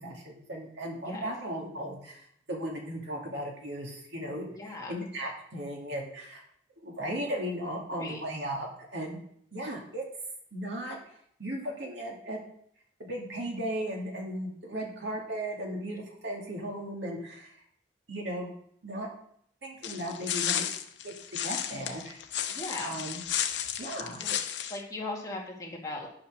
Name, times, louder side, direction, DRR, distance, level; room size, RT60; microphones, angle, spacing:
voice 1, 0.0-6.4 6.8-9.2 9.5-10.1 10.5-11.0 11.4-12.4 13.0-17.6 18.1-18.5 18.8-19.1 19.6-20.7 21.0-22.2 22.8-23.2 23.8-24.2, right 1 dB, 70° right, -1 dB, 2.5 m, -36 dB
voice 2, 1.0-1.4 4.6-5.0 7.9-8.2 22.5-23.0 24.2-24.4 24.7-26.1, left 2 dB, 20° left, -2 dB, 2.1 m, -38 dB
sound 1, 19.8-24.8, left 10 dB, 75° left, 0.8 m, -33 dB
9.8 x 5.7 x 6.3 m, 0.67 s
head